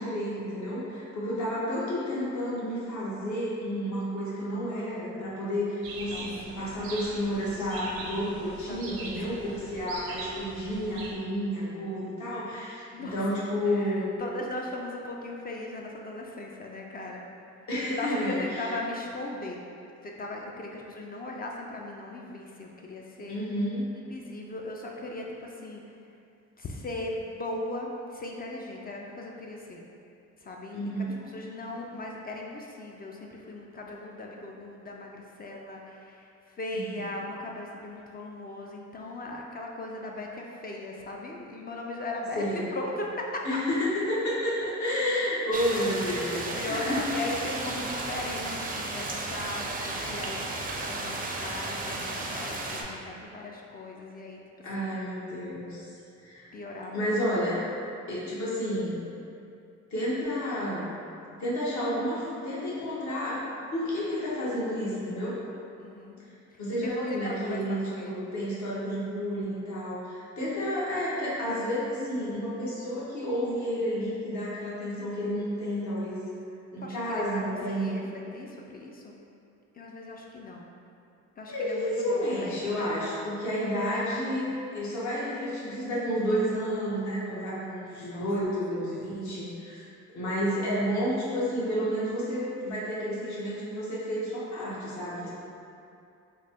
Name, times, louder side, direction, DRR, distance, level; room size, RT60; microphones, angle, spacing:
voice 1, 0.0-14.1 17.7-18.7 23.3-23.9 30.7-31.2 42.3-42.7 43.4-47.1 54.6-55.9 56.2-56.5 56.9-57.7 58.1-59.0 59.9-60.9 61.4-63.4 63.7-65.4 66.6-76.2 76.7-78.1 81.5-89.8 90.1-95.3, equal, 65° left, -8 dB, 1.2 m, -30 dB
sound 1, 5.8-11.1, right 3 dB, 75° right, 0.6 m, -41 dB
voice 2, 6.0-7.0 8.7-9.6 12.9-13.3 13.6-17.3 17.9-19.6 20.0-23.4 24.1-26.1 26.6-29.9 30.4-30.8 31.3-43.6 46.5-54.7 56.5-57.1 65.8-66.2 66.5-68.3 76.8-79.2 79.7-80.7 81.4-83.1 88.0-88.3 88.7-89.2, left 2 dB, 30° left, -1 dB, 0.3 m, -38 dB
sound 2, 45.5-52.8, right 2 dB, 30° right, 0.4 m, -34 dB
3.8 x 2.1 x 3.4 m, 2.6 s
cardioid pair, 90°, 30 cm